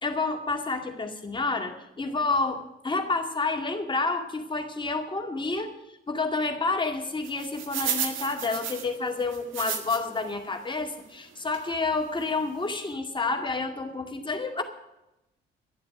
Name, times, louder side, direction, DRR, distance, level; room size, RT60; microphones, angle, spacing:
voice 1, 0.0-5.8 6.1-14.6, left 3 dB, 25° left, 4 dB, 2.2 m, -29 dB
sound 1, 7.2-10.2 10.7-10.8 11.5-11.7 12.2-12.3 12.5-12.7, right 7 dB, 80° right, 2.0 m, -33 dB
11.5 x 7.6 x 9.9 m, 0.89 s
cardioid pair, 90°, 20 cm